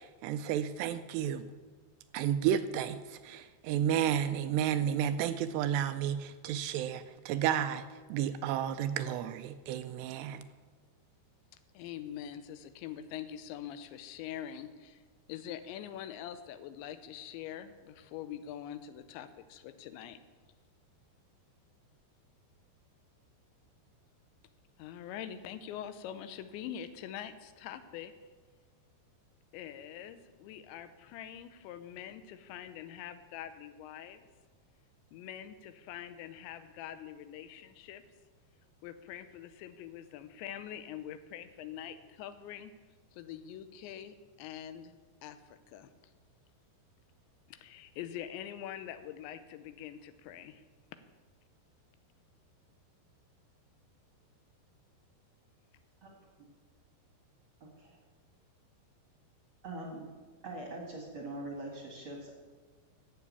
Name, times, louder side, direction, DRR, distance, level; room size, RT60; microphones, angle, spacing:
voice 1, 0.0-1.4 2.1-7.8 8.1-10.4, right 9 dB, 85° right, 10 dB, 2.6 m, -32 dB
voice 2, 11.7-15.0 15.3-20.2 24.8-28.1 29.5-34.3 35.1-38.0 38.8-42.7 43.1-45.0 45.2-45.9 47.5-50.6, left 10 dB, 90° left, 11 dB, 3.0 m, -44 dB
voice 3, 59.6-60.1 60.4-62.3, right 2 dB, 45° right, 0 dB, 1.8 m, -42 dB
12.0 x 8.0 x 8.4 m, 1.4 s
omnidirectional pair, 5.1 m